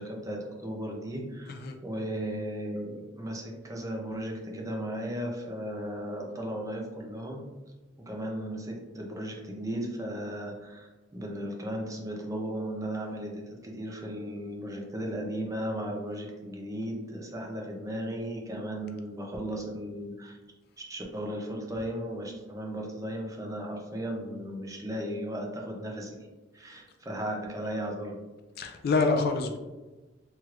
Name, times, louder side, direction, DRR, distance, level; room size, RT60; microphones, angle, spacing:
voice 1, 0.0-7.5 8.1-20.4 20.8-26.3 26.5-28.2, equal, 15° right, 0 dB, 0.5 m, -36 dB
voice 2, 28.6-29.6, left 3 dB, 50° left, 5 dB, 0.3 m, -26 dB
3.0 x 3.0 x 2.4 m, 1.2 s
head